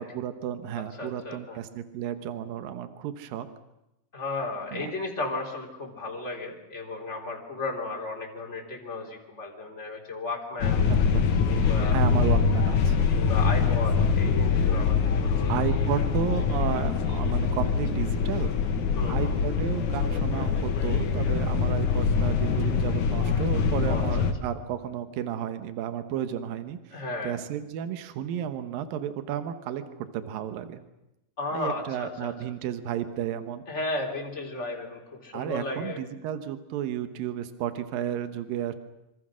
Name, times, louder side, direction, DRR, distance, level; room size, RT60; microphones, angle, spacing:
voice 1, 0.0-3.5 4.7-4.9 11.1-11.2 11.9-13.1 15.5-18.5 19.1-30.8 31.5-33.6 35.3-38.7, right 10 dB, 80° right, 9 dB, 2.9 m, -33 dB
voice 2, 1.0-1.6 4.1-10.8 11.5-12.0 13.1-15.6 18.9-19.4 23.9-24.1 26.9-27.3 31.4-32.3 33.7-36.0, left 2 dB, 20° left, 0 dB, 3.8 m, -34 dB
sound 1, 10.6-24.3, left 5 dB, 65° left, 2.8 m, -24 dB
26.0 x 26.0 x 6.3 m, 0.90 s
omnidirectional pair, 4.1 m